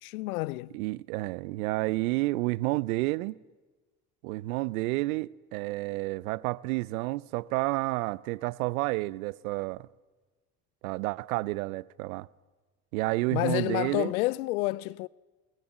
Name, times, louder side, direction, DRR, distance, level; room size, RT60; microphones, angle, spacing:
voice 1, 0.0-0.8 13.3-15.1, left 20 dB, 80° left, 0.6 m, -29 dB
voice 2, 0.7-3.4 4.2-9.9 10.8-12.3 12.9-14.1, right 21 dB, 75° right, 0.7 m, -30 dB
23.0 x 19.5 x 7.5 m
hypercardioid pair, 65°, 43 cm